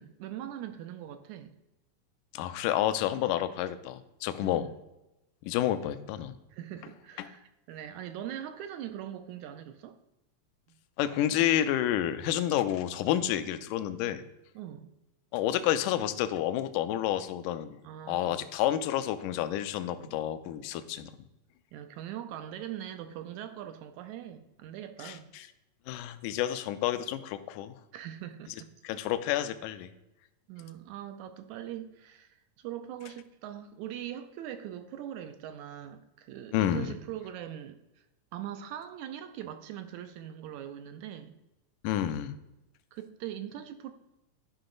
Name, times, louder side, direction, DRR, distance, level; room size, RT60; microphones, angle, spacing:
voice 1, 0.0-1.5 4.4-4.7 6.5-10.0 14.6-14.9 17.8-18.4 19.9-20.2 21.7-25.3 27.9-28.7 30.5-37.8 38.3-41.4 42.9-43.9, right 11 dB, 80° right, 1.8 m, -41 dB
voice 2, 2.3-4.7 5.5-6.4 7.2-7.3 11.0-14.2 15.3-17.7 18.1-21.1 25.0-25.1 25.9-27.7 28.8-29.9 36.5-36.9 41.8-42.3, left 12 dB, 80° left, 2.1 m, -29 dB
11.5 x 5.5 x 3.8 m
omnidirectional pair, 3.8 m